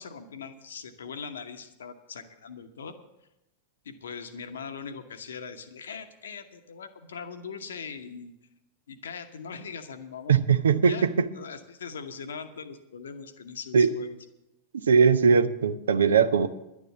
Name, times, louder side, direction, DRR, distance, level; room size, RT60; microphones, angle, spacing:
voice 1, 0.0-2.9 3.8-8.3 8.9-10.3 10.8-11.1 11.3-14.2, left 6 dB, 65° left, 8 dB, 1.0 m, -40 dB
voice 2, 10.3-10.9 13.7-13.9 14.9-16.5, right 6 dB, 70° right, 14 dB, 0.7 m, -20 dB
11.0 x 9.6 x 7.2 m, 0.91 s
figure-of-eight pair, 90°, 0 cm